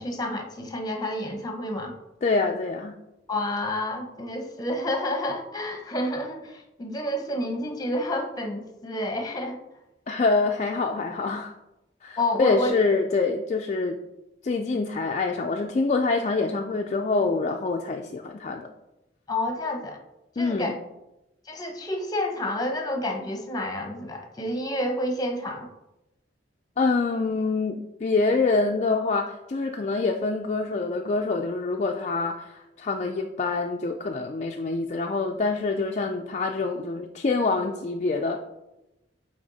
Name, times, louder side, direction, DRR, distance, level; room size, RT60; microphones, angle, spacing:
voice 1, 0.0-1.9 3.3-9.6 12.2-12.8 19.3-20.0 20.4-20.8 21.5-25.7, left 1 dB, 20° left, 4 dB, 0.9 m, -29 dB
voice 2, 2.2-2.9 10.1-11.5 12.0-14.0 14.4-18.7 20.4-20.8 26.8-38.4, left 3 dB, 40° left, 3 dB, 0.4 m, -26 dB
8.4 x 3.5 x 4.0 m, 0.94 s
head